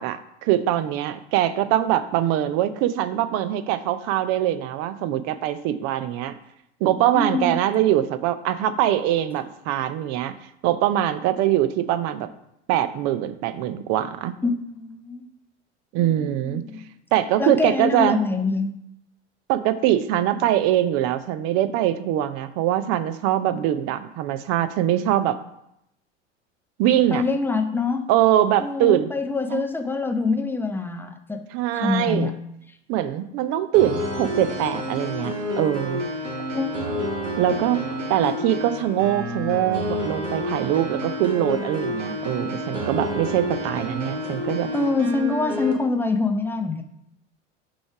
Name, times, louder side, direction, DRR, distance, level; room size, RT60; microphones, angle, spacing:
voice 1, 0.0-6.3 6.8-10.3 10.6-12.3 12.7-14.3 15.9-16.6 17.1-18.2 19.5-25.4 26.8-27.2 28.1-29.1 29.5-29.6 31.5-32.3 32.9-36.0 37.4-37.8 38.1-44.7, right 12 dB, 45° right, 13 dB, 0.6 m, -22 dB
voice 2, 7.1-7.5 14.4-15.3 16.0-16.9 17.4-18.7 27.1-28.0 28.6-31.4 31.7-32.3 36.5-37.1 44.7-46.8, left 3 dB, 5° left, 6 dB, 0.6 m, -25 dB
sound 1, 33.7-45.7, left 1 dB, 85° right, 1.1 m, -29 dB
6.1 x 3.2 x 5.8 m, 0.78 s
figure-of-eight pair, 75°, 35 cm